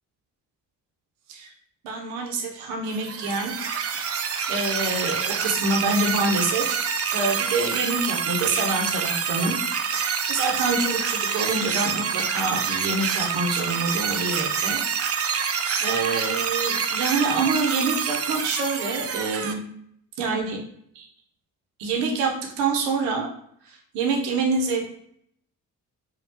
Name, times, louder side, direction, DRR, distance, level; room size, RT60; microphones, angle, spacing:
voice 1, 1.8-3.5 4.0-6.8 7.1-9.6 9.9-14.8 15.2-19.6 20.2-20.6 20.9-21.1 21.8-23.3 23.7-24.8, right 3 dB, 90° right, 1 dB, 0.7 m, -27 dB
sound 1, 2.9-19.5, right 6 dB, 35° right, 0.4 m, -27 dB
3.4 x 2.3 x 2.7 m, 0.69 s
supercardioid pair, 50°, 42 cm